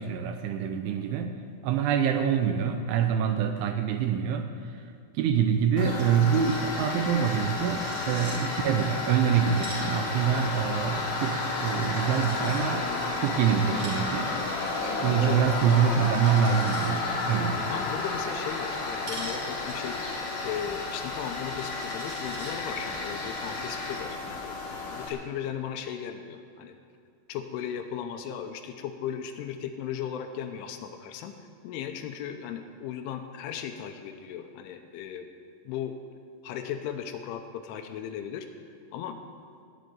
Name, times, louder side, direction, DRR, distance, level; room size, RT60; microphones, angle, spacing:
voice 1, 0.0-1.3 1.6-4.9 5.1-12.9 13.2-14.4 15.0-17.7, right 8 dB, 80° right, 6 dB, 3.0 m, -25 dB
Tools, 5.8-25.1, left 3 dB, 40° left, 2.2 m, -32 dB
Coin (dropping), 6.0-6.1 6.4-6.5 6.7-8.4 9.3-12.6 13.6-16.9 19.0-22.5, right 2 dB, 35° right, 2.9 m, -45 dB
voice 2, 17.7-20.0 20.4-24.6 24.9-26.8 27.3-31.4 31.6-35.3 35.7-35.9 36.4-38.5 38.9-39.2, left 9 dB, 80° left, 7 dB, 3.1 m, -36 dB
18.5 x 7.4 x 9.3 m, 2.3 s
omnidirectional pair, 5.9 m